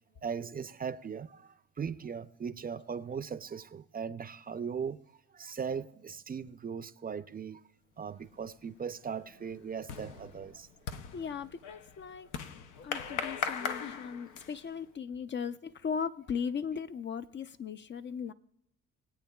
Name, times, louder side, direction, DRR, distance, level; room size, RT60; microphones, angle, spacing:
voice 1, 0.2-5.0 5.3-7.6 8.0-10.7, right 6 dB, 30° right, 0.4 m, -39 dB
sound 1, 8.2-8.6 9.0-14.7, left 6 dB, 85° left, 0.7 m, -39 dB
voice 2, 11.1-12.3 12.8-18.3, left 6 dB, 40° left, 0.4 m, -37 dB
22.5 x 8.6 x 2.3 m
cardioid pair, 90°, 30 cm